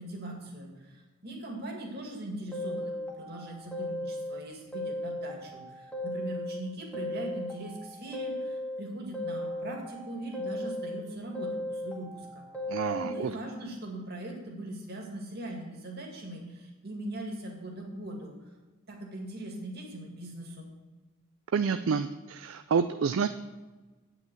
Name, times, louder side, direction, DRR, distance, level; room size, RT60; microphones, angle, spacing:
voice 1, 0.0-12.5 13.0-18.3 18.9-20.7, right 1 dB, 50° right, 0 dB, 2.2 m, -40 dB
sound 1, 2.5-4.4 4.7-6.6 6.9-8.8 9.1-11.0 11.3-13.2, left 1 dB, 5° left, 1.7 m, -36 dB
voice 2, 12.7-13.3 21.5-23.3, right 6 dB, 65° right, 11 dB, 0.4 m, -28 dB
9.0 x 5.9 x 7.7 m, 1.2 s
head